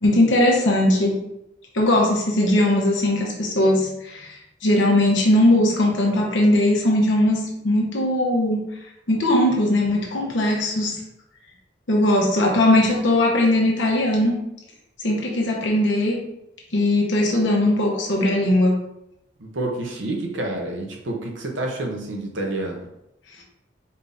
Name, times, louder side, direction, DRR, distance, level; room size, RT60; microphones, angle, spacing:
voice 1, 0.0-1.2 1.7-4.4 4.6-8.6 9.1-11.0 11.9-14.4 15.0-16.2 16.7-18.8, left 1 dB, 80° left, -2 dB, 0.9 m, -19 dB
voice 2, 19.4-22.9, right 2 dB, 85° right, 1 dB, 0.9 m, -28 dB
4.4 x 3.5 x 2.6 m, 0.83 s
head